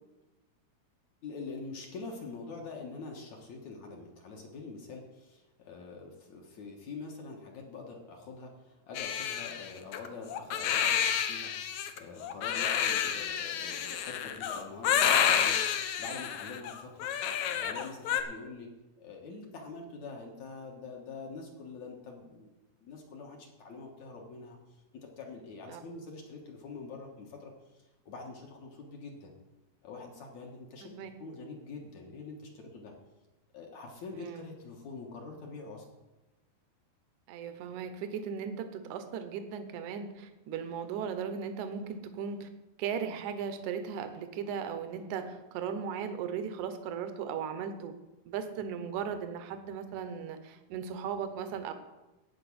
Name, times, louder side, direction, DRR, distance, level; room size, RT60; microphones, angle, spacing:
voice 1, 1.2-17.1 17.4-18.7 19.0-22.5 22.8-24.6 25.2-29.3 29.8-32.9 33.5-35.9, left 4 dB, 60° left, 0 dB, 2.3 m, -45 dB
Crying sobbing, 8.9-18.2, left 9 dB, 80° left, 1.7 m, -30 dB
voice 2, 34.1-34.4 37.3-42.5 42.8-47.9 48.3-51.7, right 7 dB, 70° right, 8 dB, 2.1 m, -37 dB
13.5 x 5.1 x 8.6 m, 1.1 s
omnidirectional pair, 4.4 m